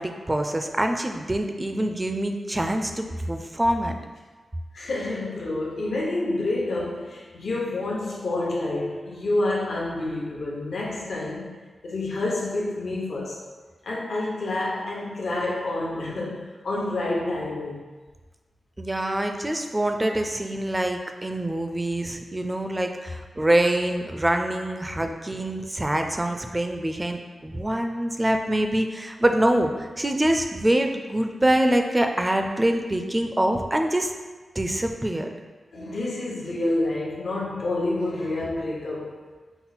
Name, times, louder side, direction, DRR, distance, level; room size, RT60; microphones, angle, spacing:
voice 1, 0.0-4.0 18.8-34.1 34.6-35.3, right 1 dB, 20° right, 5 dB, 0.4 m, -25 dB
voice 2, 4.7-11.6 11.8-13.4 13.8-17.8 35.7-39.2, left 2 dB, 75° left, -5 dB, 1.0 m, -28 dB
5.9 x 2.0 x 4.1 m, 1.3 s
wide cardioid pair, 90°, 0 cm